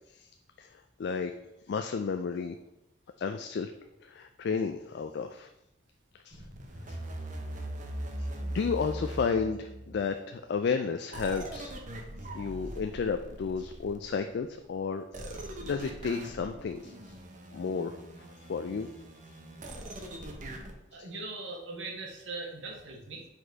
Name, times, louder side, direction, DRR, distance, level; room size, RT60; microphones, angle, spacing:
voice 1, 1.0-1.3 1.7-2.6 3.2-3.7 4.0-5.5 6.2-6.4 6.9-7.0 8.4-11.7 12.3-15.0 15.6-17.1 17.5-18.0 18.5-18.9 19.3-19.4 21.0-21.1, left 5 dB, 60° left, 7 dB, 0.3 m, -32 dB
sound 1, 6.3-10.0 11.1-14.2 15.1-20.7, right 1 dB, 40° right, 0.8 m, -41 dB
voice 2, 20.9-23.3, right 3 dB, 75° right, 0 dB, 1.4 m, -40 dB
5.0 x 4.3 x 4.5 m, 0.91 s
head